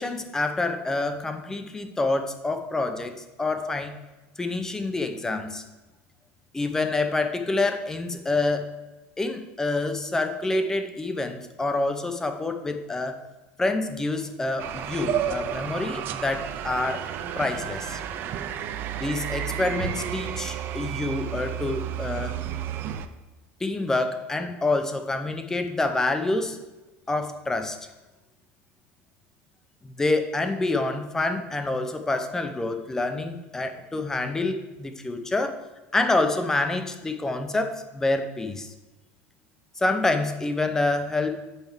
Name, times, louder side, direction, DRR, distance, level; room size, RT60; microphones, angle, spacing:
voice 1, 0.0-3.9 4.4-5.6 6.5-8.7 9.2-13.2 13.6-17.1 17.4-18.0 19.0-22.4 23.6-26.6 27.1-27.8 29.8-35.6 35.9-38.7 39.8-41.4, left 2 dB, 10° left, 8 dB, 0.6 m, -27 dB
sound 1, 14.6-23.1, right 10 dB, 40° right, 0.5 m, -32 dB
8.8 x 5.6 x 4.5 m, 1.1 s
cardioid pair, 160°, 6 cm